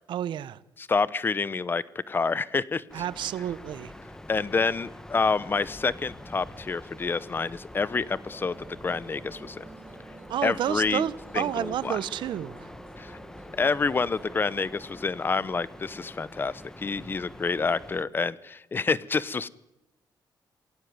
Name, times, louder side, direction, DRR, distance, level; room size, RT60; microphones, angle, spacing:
voice 1, 0.1-0.6 2.9-3.9 10.3-12.7, right 11 dB, 80° right, 1.0 m, -30 dB
voice 2, 0.8-2.8 4.3-8.6 8.8-9.6 10.4-11.0 11.3-12.0 13.0-13.2 13.6-19.5, left 4 dB, 25° left, 0.9 m, -28 dB
sound 1, 2.9-18.0, left 1 dB, 5° left, 1.6 m, -45 dB
Musical instrument, 8.2-14.6, right 3 dB, 25° right, 3.9 m, -50 dB
27.0 x 17.5 x 9.6 m
cardioid pair, 145°, 8 cm